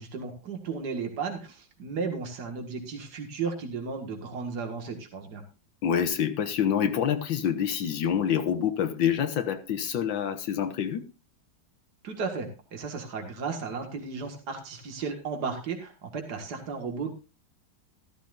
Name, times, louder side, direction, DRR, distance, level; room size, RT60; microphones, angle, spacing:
voice 1, 0.0-5.4 12.0-17.1, right 5 dB, 60° right, 2.4 m, -34 dB
voice 2, 5.8-11.0, left 8 dB, 80° left, 1.8 m, -27 dB
13.5 x 13.5 x 2.6 m
omnidirectional pair, 2.0 m